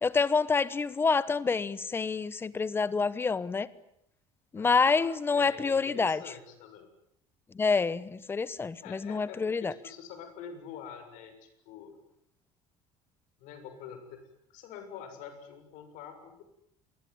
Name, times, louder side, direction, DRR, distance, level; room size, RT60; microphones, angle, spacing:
voice 1, 0.0-3.7 4.5-6.2 7.5-9.7, left 4 dB, 15° left, 17 dB, 1.1 m, -27 dB
voice 2, 4.6-6.9 8.8-12.0 13.4-16.4, left 7 dB, 70° left, 8 dB, 7.1 m, -46 dB
27.5 x 21.5 x 9.7 m, 0.76 s
cardioid pair, 155°, 14 cm